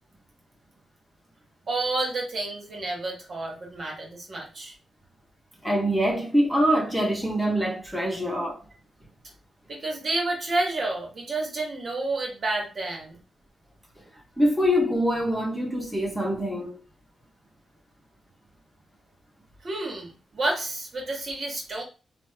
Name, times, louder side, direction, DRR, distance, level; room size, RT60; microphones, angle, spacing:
voice 1, 1.7-4.7 9.7-13.2 19.6-21.8, right 2 dB, 50° right, 1.2 m, -30 dB
voice 2, 5.6-8.6 14.4-16.8, equal, ahead, 1.1 m, -24 dB
3.1 x 2.1 x 3.5 m
cardioid pair, 75°, 0 cm